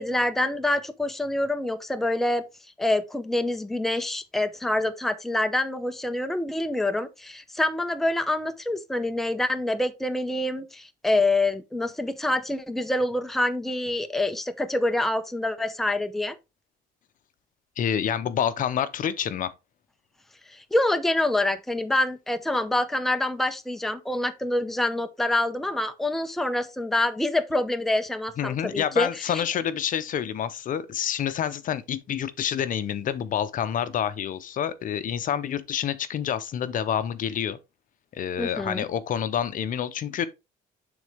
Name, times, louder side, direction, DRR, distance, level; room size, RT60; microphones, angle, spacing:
voice 1, 0.0-2.4 2.8-16.4 20.5-29.4 38.4-38.9, left 1 dB, ahead, 0.6 m, -26 dB
voice 2, 17.8-19.5 28.4-37.6 38.1-40.3, left 9 dB, 55° left, 0.7 m, -28 dB
9.4 x 3.9 x 3.4 m
cardioid pair, 110°, 17 cm